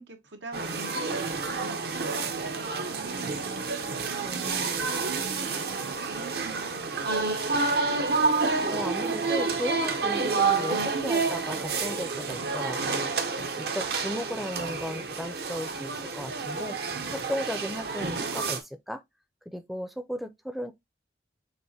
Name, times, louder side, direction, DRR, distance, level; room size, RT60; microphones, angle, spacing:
voice 1, 0.0-3.5 3.9-7.7, right 3 dB, 85° right, 1.1 m, -45 dB
sound 1, 0.5-18.6, right 4 dB, 55° right, 0.7 m, -29 dB
voice 2, 4.2-4.8 8.4-16.8 17.1-19.0 19.5-20.7, equal, ahead, 0.4 m, -36 dB
6.6 x 2.5 x 2.7 m
head